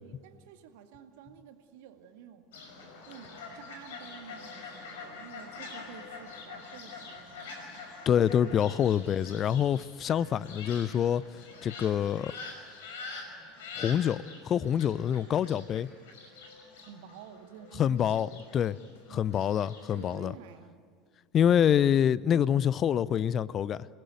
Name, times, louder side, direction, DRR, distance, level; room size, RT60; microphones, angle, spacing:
voice 1, 0.0-2.7 3.1-7.9 16.8-18.4 19.1-19.6 19.9-20.8, right 8 dB, 60° right, 2.2 m, -51 dB
Fowl, 2.5-20.1, left 4 dB, 65° left, 5.7 m, -46 dB
voice 2, 8.1-11.2 11.6-12.3 13.8-15.9 17.8-18.7 19.1-20.3 21.3-23.9, left 9 dB, 35° left, 0.6 m, -26 dB
28.0 x 19.5 x 9.2 m
figure-of-eight pair, 75°, 0 cm